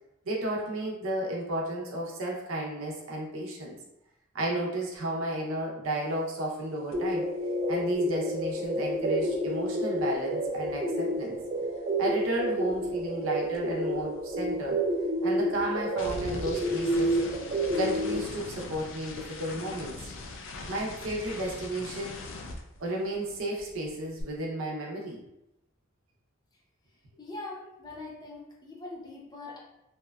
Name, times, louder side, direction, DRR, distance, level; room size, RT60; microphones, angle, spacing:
voice 1, 0.3-3.8 4.3-7.2 7.7-11.4 12.0-14.8 15.2-17.2 17.7-20.1 20.7-22.2 22.8-25.2, right 1 dB, 75° right, -2 dB, 0.6 m, -33 dB
sound 1, 6.9-7.1 7.4-11.8 12.0-23.3 23.6-24.2, left 2 dB, 65° left, 0.4 m, -43 dB
sound 2, 6.9-18.2, right 1 dB, 35° right, 0.3 m, -30 dB
voice 2, 27.2-29.6, left 2 dB, 20° left, -4 dB, 0.6 m, -42 dB
2.8 x 2.2 x 2.2 m, 0.88 s
head